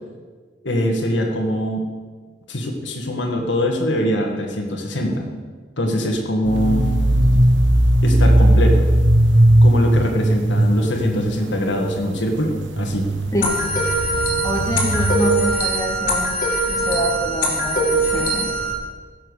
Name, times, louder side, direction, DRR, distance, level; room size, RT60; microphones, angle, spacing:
voice 1, 0.6-1.8 2.5-5.3 5.8-6.8 8.0-8.9 9.6-13.1, equal, 70° left, 2 dB, 1.9 m, -22 dB
sound 1, 6.4-15.4, right 1 dB, 75° right, 1.3 m, -18 dB
voice 2, 13.3-13.6 14.4-16.4 16.7-18.5, left 1 dB, 15° left, 0 dB, 1.7 m, -25 dB
sound 2, 13.4-18.7, right 2 dB, 45° left, 2.6 m, -22 dB
16.0 x 7.3 x 6.6 m, 1.5 s
head